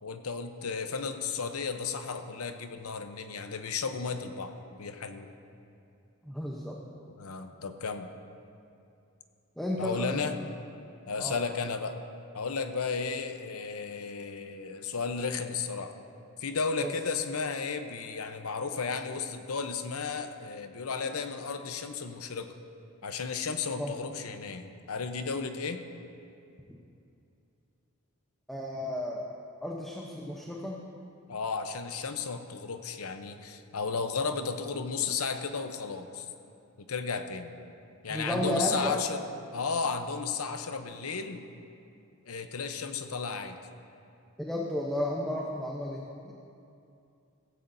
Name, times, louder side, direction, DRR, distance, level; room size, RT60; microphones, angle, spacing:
voice 1, 0.0-5.3 7.2-8.1 9.8-10.4 11.1-12.0 12.3-15.9 16.4-22.5 23.0-25.8 31.3-36.3 36.8-37.5 38.0-39.2 39.5-41.5 42.3-43.6, left 5 dB, 75° left, 8 dB, 0.8 m, -34 dB
voice 2, 6.2-6.8 9.6-10.2 11.2-11.4 16.8-16.9 23.8-23.9 28.5-29.2 29.6-30.8 38.1-38.9 44.4-46.3, left 1 dB, ahead, -3 dB, 0.8 m, -33 dB
16.5 x 15.0 x 2.7 m, 2.6 s
head